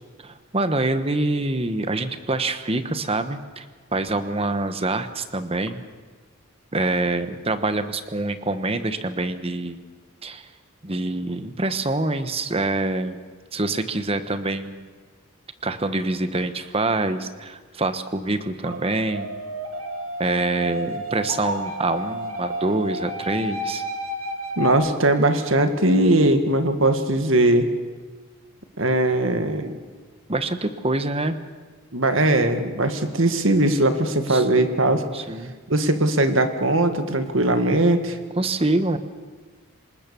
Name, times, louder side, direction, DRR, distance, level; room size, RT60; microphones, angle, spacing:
voice 1, 0.2-3.6 3.9-5.8 6.7-9.8 10.2-10.5 10.8-13.2 13.5-14.8 15.6-19.3 20.2-23.8 30.3-31.4 34.3-34.4 34.9-35.5 38.4-39.0, right 2 dB, 25° right, 10 dB, 1.1 m, -25 dB
sound 1, 18.6-24.7, equal, 85° right, 2.7 m, -31 dB
voice 2, 24.6-27.7 28.8-29.8 31.9-35.0 35.7-38.2, right 1 dB, 65° right, 7 dB, 1.9 m, -20 dB
26.5 x 19.5 x 7.0 m, 1.5 s
head